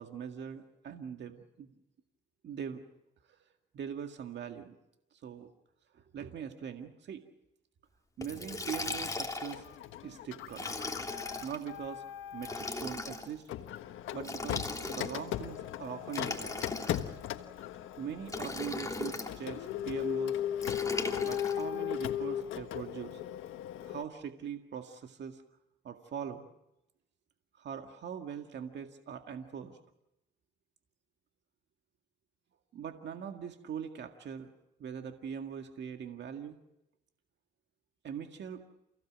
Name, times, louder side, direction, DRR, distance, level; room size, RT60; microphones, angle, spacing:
voice 1, 0.0-1.7 2.4-2.8 3.7-4.8 5.2-5.5 5.9-7.2 8.2-9.6 10.0-10.7 11.4-12.0 12.3-13.5 14.1-16.6 18.0-20.4 21.2-23.2 23.8-25.4 25.8-26.5 27.6-29.8 32.7-34.5 34.8-36.6 38.0-38.6, right 8 dB, 60° right, 5 dB, 2.0 m, -41 dB
Liquid, 8.2-9.6 10.5-11.6 12.4-13.3 14.2-15.3 16.1-17.3 18.3-19.3 20.6-21.6, left 2 dB, 15° left, 3.1 m, -38 dB
Printer, 9.5-12.8 13.5-24.0, left 10 dB, 85° left, 1.4 m, -37 dB
29.0 x 16.5 x 7.6 m, 0.87 s
cardioid pair, 90°, 20 cm